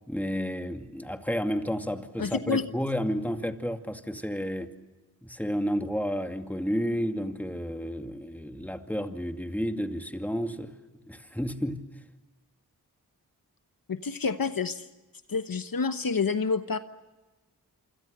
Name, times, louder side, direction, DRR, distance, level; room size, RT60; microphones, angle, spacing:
voice 1, 0.1-4.7 5.2-10.7 11.1-11.8, equal, 5° left, 2.4 m, -31 dB
voice 2, 2.2-2.7 13.9-14.9 15.3-16.8, left 5 dB, 60° left, 1.1 m, -28 dB
27.5 x 25.5 x 6.8 m
cardioid pair, 40°, 38 cm